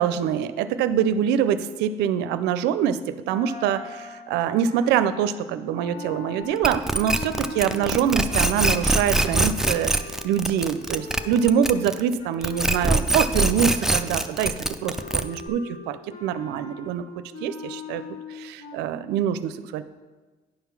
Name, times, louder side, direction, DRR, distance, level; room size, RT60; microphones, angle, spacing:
voice 1, 0.0-9.9 10.2-18.0 18.3-19.8, right 9 dB, 85° right, 13 dB, 0.4 m, -25 dB
sound 1, 3.3-13.1 13.5-18.8, left 4 dB, 55° left, 1.3 m, -41 dB
sound 2, 6.6-12.1 12.4-15.5, right 1 dB, 5° right, 0.3 m, -23 dB
9.9 x 3.7 x 5.9 m, 1.3 s
cardioid pair, 110°, 17 cm